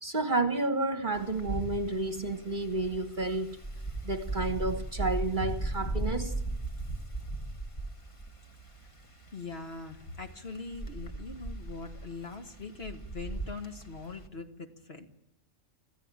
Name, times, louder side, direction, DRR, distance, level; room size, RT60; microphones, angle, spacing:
voice 1, 0.0-3.6 4.0-6.3, right 2 dB, 40° right, 1.2 m, -31 dB
Wind, 1.1-14.3, right 2 dB, 25° left, 1.5 m, -37 dB
voice 2, 9.3-15.1, left 4 dB, 45° left, 2.0 m, -42 dB
25.0 x 15.0 x 8.9 m
omnidirectional pair, 1.4 m